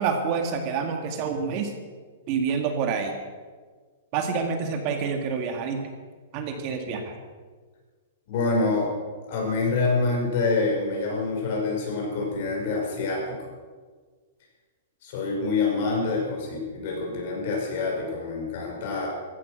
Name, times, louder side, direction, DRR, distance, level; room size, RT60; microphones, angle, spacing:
voice 1, 0.0-1.7 2.3-3.1 4.1-5.9 6.3-7.1, right 5 dB, 35° right, 5 dB, 1.7 m, -27 dB
voice 2, 8.3-8.9 9.3-13.4 15.0-19.1, left 3 dB, 50° left, -1 dB, 6.0 m, -26 dB
15.0 x 12.0 x 6.4 m, 1.5 s
hypercardioid pair, 155°, 0 cm